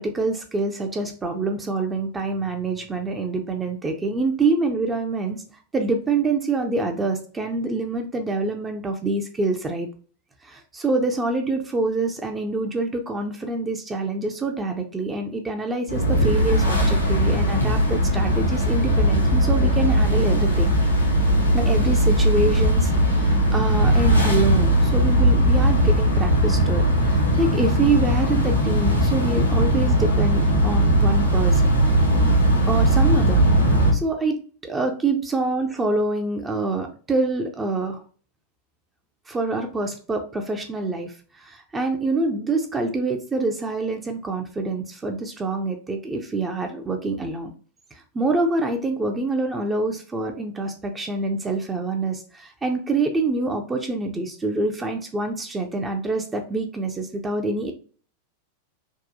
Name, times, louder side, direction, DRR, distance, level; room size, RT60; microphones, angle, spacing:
voice 1, 0.0-5.4 5.7-9.9 10.4-20.7 21.5-31.7 32.7-33.4 33.7-38.0 39.3-47.5 47.9-57.7, right 2 dB, 15° right, 4 dB, 0.5 m, -26 dB
sound 1, 15.9-33.9, right 1 dB, 85° left, 0.8 m, -19 dB
3.6 x 2.2 x 2.6 m, 0.41 s
figure-of-eight pair, 90°, 0 cm